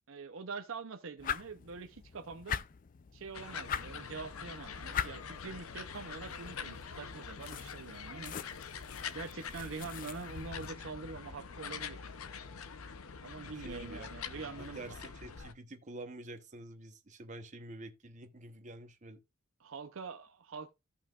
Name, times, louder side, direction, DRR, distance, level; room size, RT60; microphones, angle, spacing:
voice 1, 0.1-2.6 3.1-8.4 9.1-12.1 13.2-14.8 19.6-20.7, right 4 dB, 65° right, 0.7 m, -44 dB
sound 1, 1.2-10.7, left 8 dB, 40° left, 0.4 m, -43 dB
sound 2, 3.3-15.5, left 6 dB, 80° left, 0.7 m, -45 dB
voice 2, 13.5-19.2, right 2 dB, 35° right, 1.0 m, -48 dB
14.5 x 5.6 x 2.4 m
head